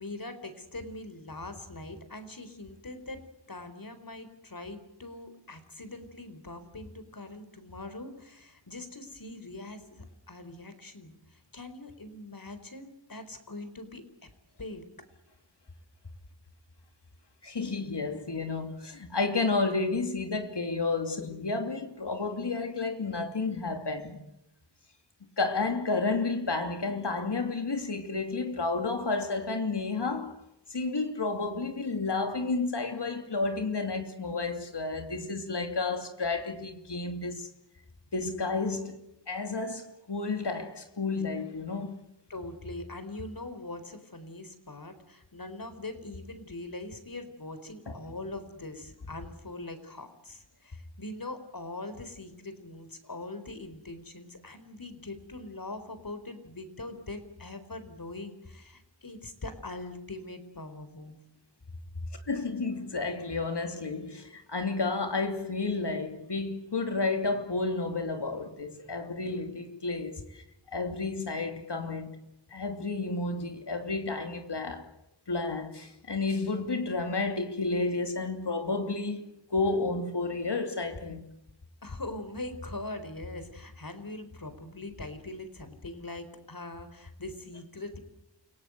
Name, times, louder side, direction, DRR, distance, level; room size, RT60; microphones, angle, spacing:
voice 1, 0.0-3.2 3.5-14.3 14.6-14.9 42.3-61.2 81.8-88.0, left 2 dB, 50° left, 4.4 m, -42 dB
voice 2, 17.4-24.2 25.2-30.4 30.7-37.5 38.1-39.0 39.3-42.0 47.9-48.0 62.2-70.4 70.7-72.2 72.5-74.9 75.3-79.2 79.5-81.2, left 3 dB, 70° left, 2.9 m, -31 dB
29.0 x 17.5 x 8.0 m
wide cardioid pair, 50°, 42 cm